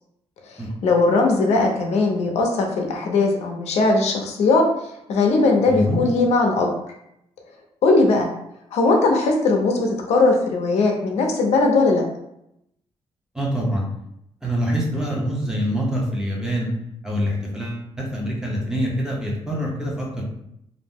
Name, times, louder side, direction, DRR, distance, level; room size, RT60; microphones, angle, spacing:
voice 1, 0.5-4.6 5.1-6.7 7.8-8.3 8.7-12.0, left 3 dB, 85° left, 1 dB, 0.6 m, -19 dB
voice 2, 5.7-6.0 13.3-13.9 14.4-16.7 17.0-20.2, equal, 5° right, -3 dB, 0.6 m, -25 dB
2.6 x 2.0 x 3.4 m, 0.79 s
wide cardioid pair, 165°, 11 cm